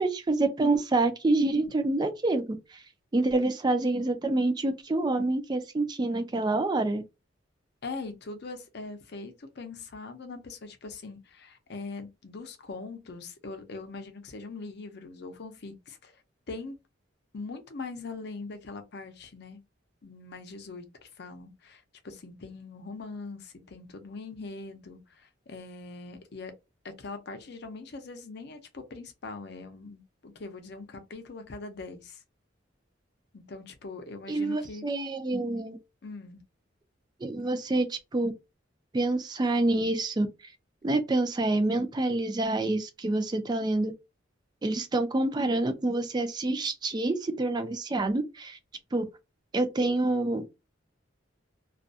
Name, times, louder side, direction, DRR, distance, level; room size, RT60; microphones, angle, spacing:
voice 1, 0.0-2.6 3.1-7.0 34.3-35.8 37.2-38.3 38.9-40.3 40.8-43.9 44.6-48.6 48.9-49.0 49.5-50.4, right 2 dB, 20° right, 0.3 m, -27 dB
voice 2, 7.8-16.1 16.5-16.7 17.3-19.6 20.0-26.5 26.8-32.2 33.3-34.9 36.0-36.4, left 3 dB, 55° left, 0.6 m, -42 dB
2.3 x 2.2 x 2.6 m
head